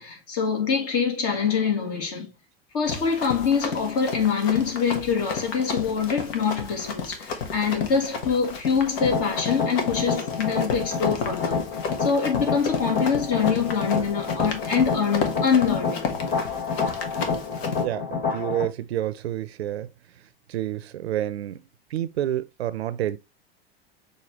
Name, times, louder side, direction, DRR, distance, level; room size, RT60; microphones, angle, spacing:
voice 1, 0.0-2.3 2.7-11.6 12.0-16.1, left 6 dB, 50° left, 2.1 m, -24 dB
Run, 2.8-17.8, left 5 dB, 70° left, 1.1 m, -33 dB
sound 1, 9.0-18.7, left 5 dB, 30° left, 3.1 m, -29 dB
voice 2, 17.8-19.9 20.5-21.6 21.9-23.2, right 12 dB, 90° right, 0.6 m, -29 dB
6.4 x 2.7 x 2.9 m
hypercardioid pair, 95°, 31 cm